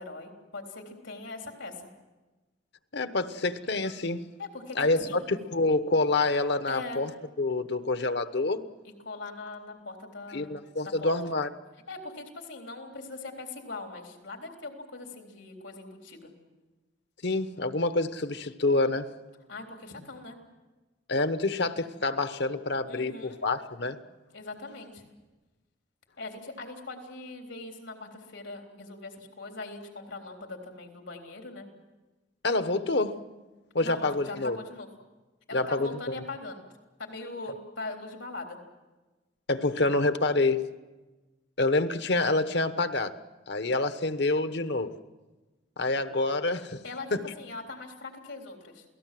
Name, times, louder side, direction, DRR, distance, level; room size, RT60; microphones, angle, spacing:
voice 1, 0.0-1.9 4.4-4.8 5.1-5.2 6.7-7.0 9.0-10.6 11.0-11.1 11.9-16.3 19.5-20.4 22.9-23.4 24.3-25.1 26.2-31.7 33.8-34.9 35.5-36.7 37.0-38.6 46.8-48.8, left 3 dB, 85° left, 2 dB, 3.7 m, -41 dB
voice 2, 2.9-4.3 4.8-7.1 7.4-8.6 10.3-11.5 17.2-19.1 21.1-24.0 32.4-33.2 33.7-34.6 35.5-35.9 39.5-40.6 41.6-43.2 43.5-44.9 45.8-46.8 47.1-47.3, left 2 dB, 60° left, 11 dB, 1.1 m, -27 dB
28.0 x 18.0 x 7.7 m, 1.2 s
head